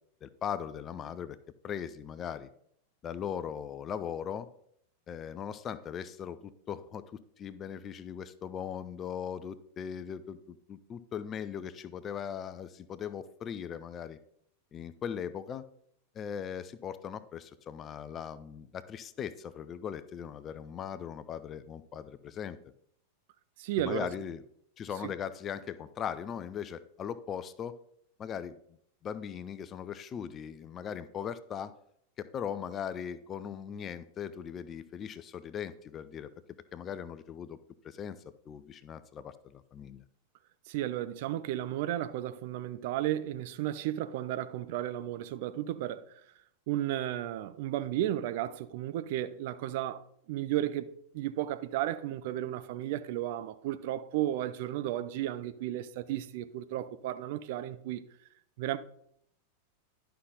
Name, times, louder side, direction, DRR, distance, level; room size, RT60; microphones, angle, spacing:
voice 1, 0.2-1.4 1.6-2.5 3.0-4.5 5.1-14.2 14.7-15.7 16.1-22.6 23.8-24.4 24.8-27.8 28.2-28.6 29.0-31.7 32.2-36.3 36.7-37.6 37.8-38.2 38.5-40.0, left 8 dB, 25° left, 0.5 m, -39 dB
voice 2, 23.6-24.1 25.0-25.1 40.7-46.1 46.7-50.0 50.3-58.1 58.6-58.8, right 13 dB, 50° right, 0.5 m, -34 dB
11.0 x 5.7 x 3.8 m
figure-of-eight pair, 90°, 0 cm